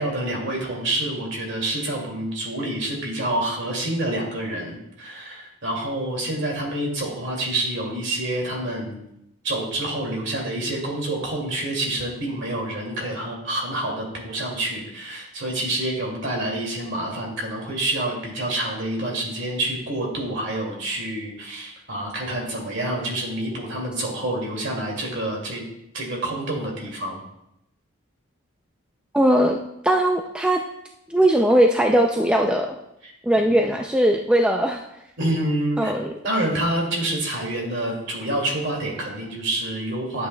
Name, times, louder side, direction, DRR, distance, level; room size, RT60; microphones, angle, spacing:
voice 1, 0.0-9.0 9.4-25.6 25.9-27.2 33.0-33.1 33.5-33.6 35.2-35.9 36.2-40.3, right 1 dB, 55° right, -1 dB, 2.3 m, -27 dB
voice 2, 29.1-29.6 29.8-30.6 31.1-32.7 33.2-34.8 35.8-36.1, right 1 dB, 5° right, 2 dB, 0.3 m, -19 dB
11.0 x 8.1 x 2.2 m, 0.81 s
head